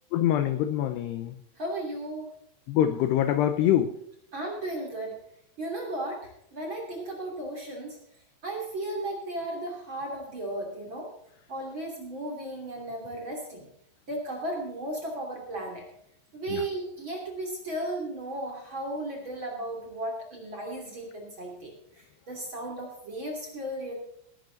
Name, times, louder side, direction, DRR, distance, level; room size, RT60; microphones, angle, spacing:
voice 1, 0.1-1.4 2.7-4.0 16.5-16.6, left 11 dB, 80° left, 10 dB, 2.4 m, -25 dB
voice 2, 1.6-2.3 4.3-5.2 5.6-8.0 8.4-11.1 11.5-13.7 14.1-15.9 16.3-23.9, right 1 dB, 30° right, 0 dB, 2.8 m, -35 dB
19.0 x 11.0 x 4.0 m, 0.72 s
omnidirectional pair, 5.6 m